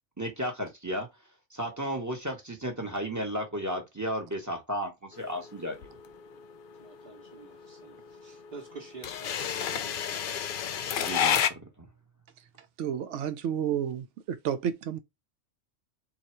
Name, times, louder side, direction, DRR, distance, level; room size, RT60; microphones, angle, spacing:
voice 1, 0.2-1.1 1.5-5.9 11.0-11.4 11.8-11.9, equal, 15° right, 0.9 m, -33 dB
sound 1, 5.2-11.5, left 9 dB, 60° left, 0.6 m, -30 dB
voice 2, 6.8-10.5, right 4 dB, 45° right, 1.0 m, -48 dB
voice 3, 12.8-15.0, right 9 dB, 80° right, 0.9 m, -31 dB
3.9 x 2.4 x 4.3 m
omnidirectional pair, 1.2 m